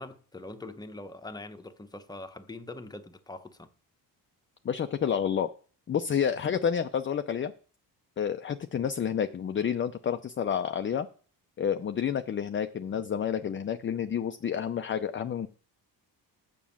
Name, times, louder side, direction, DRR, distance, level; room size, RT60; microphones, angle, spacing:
voice 1, 0.0-3.7, left 2 dB, 10° left, 0.9 m, -43 dB
voice 2, 4.6-5.5 5.9-7.5 8.2-11.1 11.6-15.5, left 8 dB, 30° left, 0.5 m, -29 dB
7.2 x 6.1 x 7.1 m
cardioid pair, 90°, 41 cm